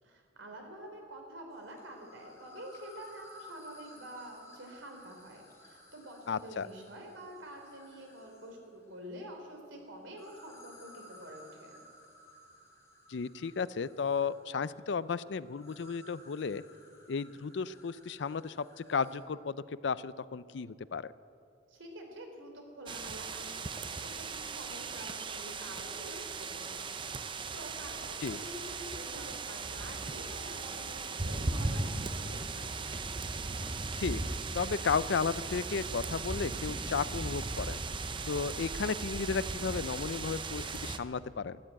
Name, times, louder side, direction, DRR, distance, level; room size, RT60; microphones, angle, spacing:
voice 1, 0.0-11.7 21.7-32.7, right 1 dB, 80° right, 3 dB, 3.3 m, -48 dB
sound 1, 1.5-8.7 10.0-19.2, left 1 dB, 15° left, 3.4 m, -56 dB
voice 2, 6.3-6.7 13.1-16.6 17.1-21.1 28.2-28.4 34.0-34.2 34.5-37.8 38.3-41.6, left 5 dB, 65° left, 17 dB, 0.4 m, -34 dB
sound 2, 22.9-41.0, right 3 dB, 25° right, 0.6 m, -37 dB
13.0 x 12.0 x 8.8 m, 2.4 s
head